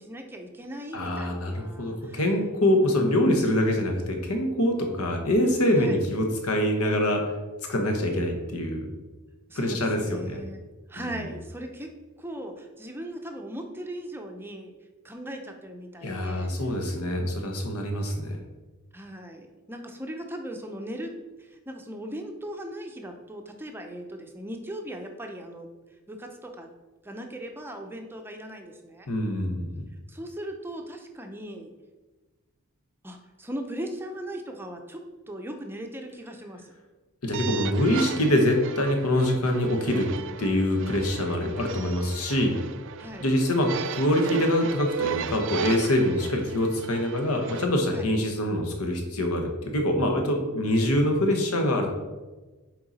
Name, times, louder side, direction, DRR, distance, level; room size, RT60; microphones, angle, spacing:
voice 1, 0.0-2.2 5.8-6.1 9.5-10.6 10.9-11.9 12.2-14.7 15.0-16.7 18.9-21.1 21.4-25.7 26.1-26.7 27.0-29.1 30.1-31.7 33.0-35.0 35.3-36.7 43.0-43.3 46.1-46.3 47.9-48.1, right 1 dB, 10° right, 3 dB, 0.6 m, -38 dB
voice 2, 0.9-7.2 7.7-8.9 9.5-10.4 16.0-18.4 29.1-29.8 37.2-40.1 40.4-42.6 43.2-51.9, left 1 dB, 75° left, 3 dB, 1.1 m, -25 dB
sound 1, 37.3-47.6, right 8 dB, 55° right, 0.4 m, -36 dB
6.7 x 4.7 x 4.1 m, 1.2 s
head